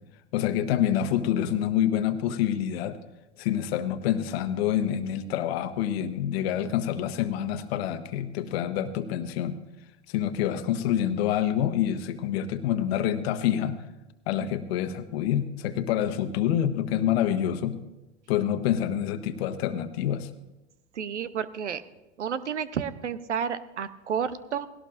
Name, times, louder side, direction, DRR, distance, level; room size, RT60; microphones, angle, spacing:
voice 1, 0.3-3.0 3.4-9.6 10.1-13.8 14.3-17.8 18.3-20.3, left 10 dB, 65° left, 10 dB, 1.2 m, -27 dB
voice 2, 20.9-21.8 22.2-24.7, right 7 dB, 90° right, 14 dB, 0.8 m, -31 dB
19.0 x 17.0 x 2.6 m, 0.98 s
hypercardioid pair, 90°, 34 cm